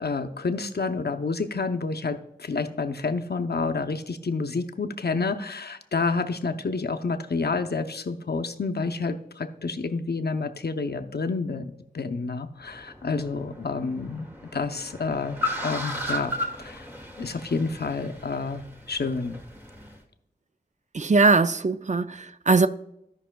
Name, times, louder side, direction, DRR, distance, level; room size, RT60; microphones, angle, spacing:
voice 1, 0.0-14.3 14.5-16.9 17.2-19.4, left 4 dB, 75° left, 0.6 m, -29 dB
Car, 12.6-20.0, left 1 dB, 15° right, 1.3 m, -36 dB
voice 2, 20.9-22.7, right 3 dB, 45° right, 0.4 m, -20 dB
16.0 x 5.5 x 2.2 m
wide cardioid pair, 50°, 17 cm